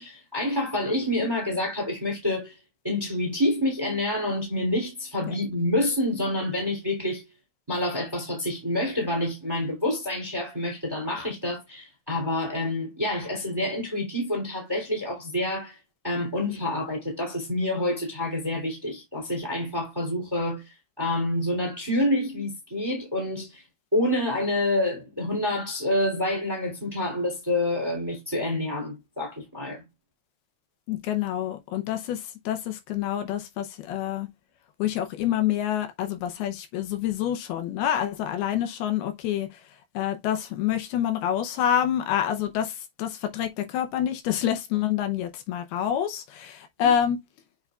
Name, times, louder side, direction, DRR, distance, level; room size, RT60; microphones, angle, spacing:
voice 1, 0.0-2.6 2.8-7.2 7.7-15.8 16.0-23.6 23.9-29.8 46.8-46.9, left 1 dB, 5° right, 2.2 m, -27 dB
voice 2, 30.9-34.3 34.8-39.5 39.9-47.2, left 10 dB, 75° left, 2.6 m, -27 dB
8.1 x 5.5 x 2.4 m
omnidirectional pair, 4.7 m